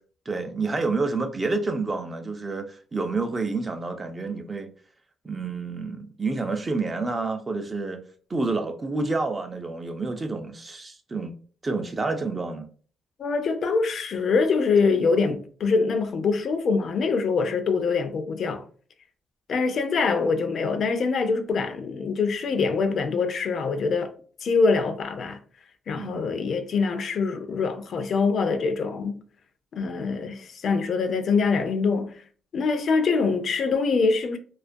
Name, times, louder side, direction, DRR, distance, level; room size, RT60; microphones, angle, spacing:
voice 1, 0.3-4.7 5.2-8.0 8.3-11.3 11.6-12.7 14.9-15.0 25.9-26.2, right 3 dB, 30° right, 0.4 m, -29 dB
voice 2, 13.2-18.6 19.5-24.1 24.4-25.4 25.9-29.2 29.7-32.2 32.5-34.4, left 4 dB, 60° left, 0.4 m, -24 dB
2.3 x 2.1 x 2.5 m
cardioid pair, 90°, 0 cm